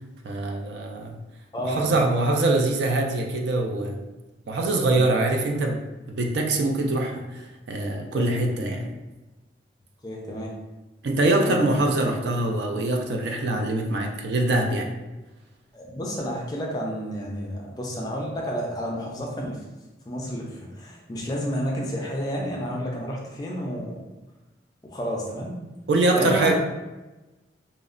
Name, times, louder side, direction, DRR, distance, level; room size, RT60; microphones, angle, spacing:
voice 1, 0.2-1.2 1.6-4.0 4.5-5.8 6.1-8.9 11.0-14.9 25.9-26.5, right 2 dB, 70° right, 2 dB, 0.3 m, -24 dB
voice 2, 1.5-2.1 4.4-4.6 4.8-5.0 8.1-8.3 10.0-10.5 11.4-11.6 15.7-19.6 20.1-24.0 24.8-25.6 26.1-26.5, equal, 20° left, -2 dB, 0.4 m, -30 dB
2.8 x 2.0 x 2.4 m, 1.1 s
head